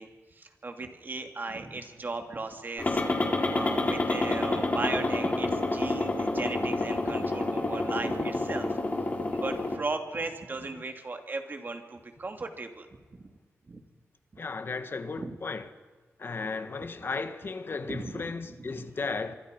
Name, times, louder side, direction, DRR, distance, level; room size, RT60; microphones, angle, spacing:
voice 1, 0.0-3.0 3.5-8.8 9.2-13.3 13.7-13.8 14.3-14.4 15.2-15.4 17.9-18.9, right 3 dB, 40° right, 2.8 m, -37 dB
sound 1, 2.8-9.8, left 2 dB, 30° left, 3.9 m, -28 dB
voice 2, 14.4-15.7 16.2-19.4, left 4 dB, 45° left, 1.8 m, -35 dB
25.5 x 25.0 x 5.4 m
wide cardioid pair, 105°, 5 cm